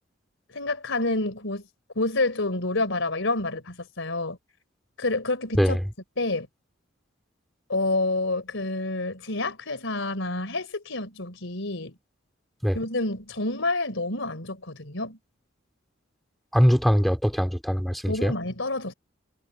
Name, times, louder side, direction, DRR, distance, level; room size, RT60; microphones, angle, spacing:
voice 1, 0.5-1.6 2.0-4.4 5.0-5.8 6.2-6.5 7.7-11.9 12.7-15.2 18.1-18.9, left 2 dB, 70° left, 4.1 m, -28 dB
voice 2, 16.5-18.3, equal, ahead, 2.5 m, -22 dB
head